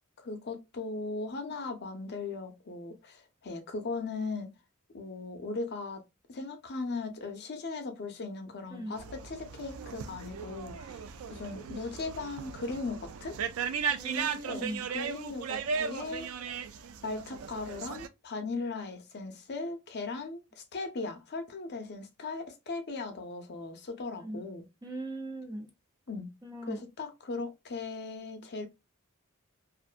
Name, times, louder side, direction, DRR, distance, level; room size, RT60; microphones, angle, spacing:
voice 1, 0.2-4.5 4.9-6.0 6.3-11.0 11.3-13.4 14.4-14.6 14.9-16.3 17.0-24.7 26.1-26.3 26.6-28.7, left 3 dB, 50° left, 0.6 m, -38 dB
sound 1, 9.0-18.1, right 6 dB, 70° right, 0.4 m, -37 dB
voice 2, 13.9-14.9 24.2-24.4 24.8-25.7 26.4-26.8, right 1 dB, 20° right, 0.5 m, -39 dB
2.5 x 2.2 x 2.3 m
head